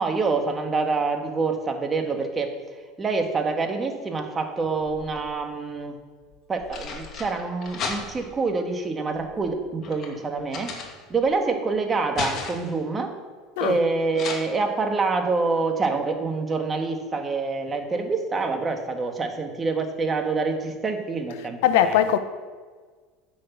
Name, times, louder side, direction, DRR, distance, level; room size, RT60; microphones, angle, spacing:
voice 1, 0.0-2.6 3.0-6.0 6.5-10.8 11.1-13.1 13.6-22.1, right 4 dB, 25° right, 1.8 m, -26 dB
sound 1, 4.6-5.4 6.3-8.4 9.1-11.4 11.7-12.8 14.1-14.3, left 5 dB, 45° left, 2.4 m, -35 dB
voice 2, 21.6-22.2, left 10 dB, 75° left, 0.9 m, -19 dB
9.9 x 6.5 x 7.2 m
hypercardioid pair, 90°, 0 cm